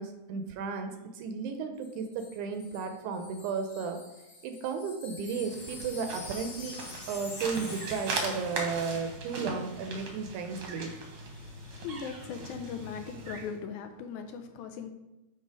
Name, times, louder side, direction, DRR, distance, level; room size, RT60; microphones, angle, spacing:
voice 1, 0.0-4.0 4.4-6.8 7.1-10.9, right 5 dB, 80° right, 6 dB, 1.9 m, -34 dB
Wind chime, 1.8-9.1 9.3-9.5, left 3 dB, 50° left, 2.2 m, -47 dB
sound 1, 5.3-13.6, right 3 dB, 65° right, 1.4 m, -39 dB
voice 2, 11.3-14.9, left 6 dB, 80° left, 7 dB, 1.9 m, -39 dB
9.0 x 3.0 x 4.7 m, 1.0 s
omnidirectional pair, 3.7 m